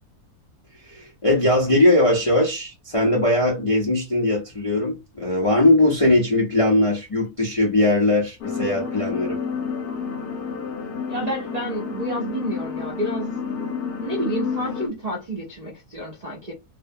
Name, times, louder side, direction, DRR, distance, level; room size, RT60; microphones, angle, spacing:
voice 1, 0.9-9.4, left 1 dB, 40° left, 0.4 m, -20 dB
sound 1, 8.4-14.9, left 6 dB, 80° left, 1.1 m, -29 dB
voice 2, 11.1-13.3 14.0-16.5, right 1 dB, 50° right, 0.5 m, -30 dB
2.6 x 2.1 x 2.6 m
omnidirectional pair, 1.6 m